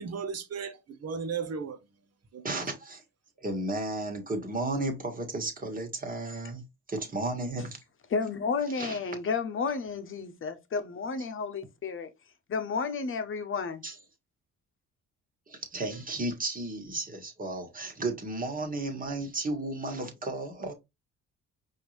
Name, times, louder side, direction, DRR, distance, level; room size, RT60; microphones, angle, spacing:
voice 1, 0.0-1.8 2.3-2.6, right 6 dB, 55° right, 1.1 m, -35 dB
voice 2, 2.4-3.0 3.4-6.6 6.9-7.8 8.8-9.0 13.8-13.9 15.5-20.7, right 2 dB, 30° right, 1.8 m, -33 dB
voice 3, 8.1-12.1 12.5-13.8, left 5 dB, 45° left, 0.9 m, -32 dB
5.1 x 2.8 x 3.2 m
cardioid pair, 90°, 30 cm